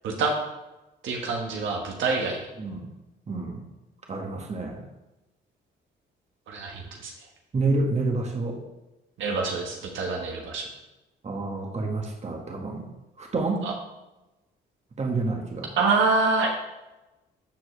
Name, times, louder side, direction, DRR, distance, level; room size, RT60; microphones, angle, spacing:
voice 1, 0.0-0.3 1.0-2.4 6.5-7.1 9.2-10.7 13.6-13.7 15.8-16.5, right 4 dB, 75° right, 0 dB, 1.5 m, -26 dB
voice 2, 3.3-3.6 4.1-4.9 7.5-8.6 11.2-12.9 13.2-13.6 15.0-15.7, right 3 dB, 35° right, 1 dB, 1.6 m, -28 dB
13.0 x 4.7 x 3.3 m, 1.0 s
cardioid pair, 90°, 20 cm